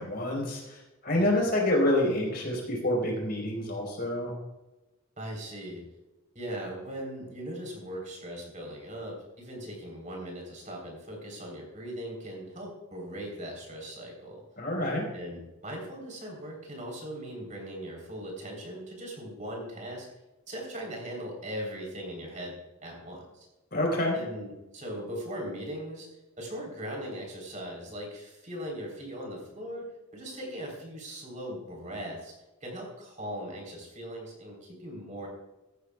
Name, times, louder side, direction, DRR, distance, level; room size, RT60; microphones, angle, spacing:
voice 1, 0.0-4.3 14.6-15.0 23.7-24.2, left 1 dB, 45° left, -1 dB, 4.3 m, -27 dB
voice 2, 1.1-1.4 5.2-5.8 6.3-14.4 15.1-20.1 20.5-23.5 24.1-26.1 26.4-32.3 32.6-35.3, equal, 35° right, 0 dB, 3.7 m, -39 dB
15.0 x 13.0 x 2.3 m, 1.0 s
head